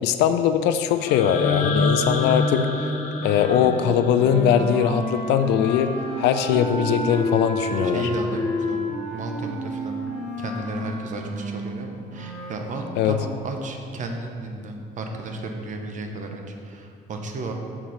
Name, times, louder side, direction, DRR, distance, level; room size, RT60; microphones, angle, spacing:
voice 1, 0.0-2.7 3.2-5.9 6.2-8.0 13.0-13.1, left 8 dB, 85° left, 9 dB, 0.4 m, -21 dB
sound 1, 1.0-5.0, left 3 dB, 45° left, 0.8 m, -26 dB
Wind instrument woodwind instrument, 3.2-12.6, left 1 dB, 5° left, 1.6 m, -30 dB
voice 2, 7.7-10.0 10.4-17.5, right 2 dB, 50° right, 3 dB, 0.8 m, -33 dB
6.0 x 4.1 x 5.0 m, 2.3 s
cardioid pair, 110°, 17 cm